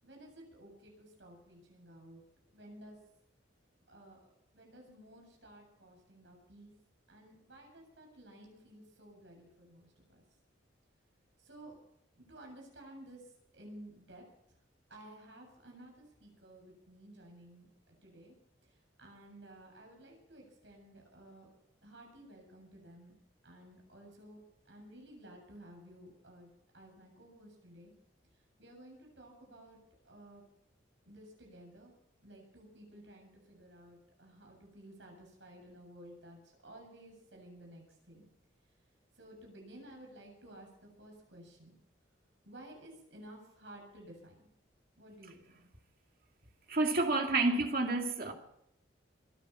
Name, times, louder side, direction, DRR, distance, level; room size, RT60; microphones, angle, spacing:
voice 1, 0.0-2.2 2.5-3.0 3.9-4.2 4.5-6.7 7.1-10.2 11.4-11.7 12.2-13.2 13.5-14.2 14.9-17.7 18.0-18.3 19.0-21.5 21.8-23.1 23.4-24.4 24.7-26.5 26.7-27.9 28.6-29.8 30.0-30.4 31.0-31.9 32.2-38.3 39.2-41.7 42.4-44.5 45.0-45.7, right 1 dB, 70° right, 7.8 m, -54 dB
voice 2, 46.7-48.3, right 2 dB, 50° right, 2.3 m, -29 dB
23.0 x 10.5 x 5.9 m
head